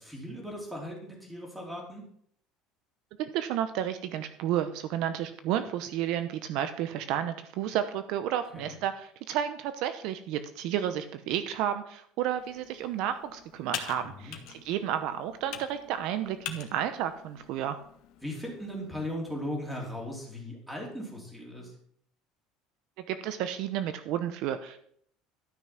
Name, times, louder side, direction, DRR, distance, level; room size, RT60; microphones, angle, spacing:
voice 1, 0.0-2.0 8.5-8.8 14.0-14.4 18.2-21.7, equal, 5° right, 0 dB, 3.1 m, -38 dB
voice 2, 3.2-17.8 23.1-24.8, right 10 dB, 60° right, 10 dB, 0.8 m, -31 dB
Computer keyboard, 12.3-19.1, left 10 dB, 60° left, 1.6 m, -44 dB
12.5 x 6.1 x 5.9 m, 0.65 s
cardioid pair, 155°, 0 cm